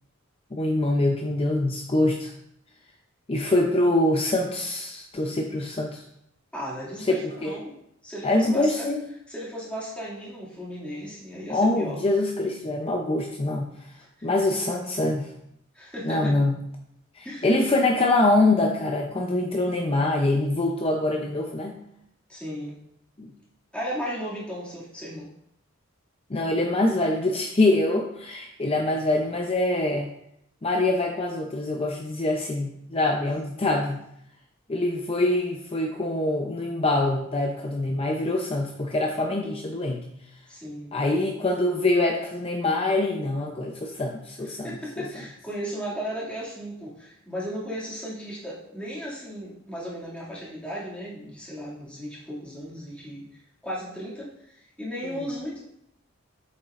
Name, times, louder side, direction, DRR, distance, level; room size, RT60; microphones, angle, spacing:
voice 1, 0.5-2.3 3.3-6.0 7.1-7.6 8.2-9.1 11.5-13.7 14.2-15.3 16.0-16.6 17.2-21.8 23.2-23.3 26.3-30.1 30.6-34.0 34.7-40.0 40.9-45.1, left 2 dB, 30° left, 1 dB, 0.6 m, -24 dB
voice 2, 6.5-7.7 8.0-8.9 9.3-12.0 14.0-14.3 15.7-16.4 17.2-17.5 22.3-22.8 23.7-25.3 40.5-40.9 44.4-53.2 53.6-55.6, equal, 5° left, -8 dB, 2.3 m, -35 dB
8.5 x 7.2 x 2.5 m, 0.75 s
head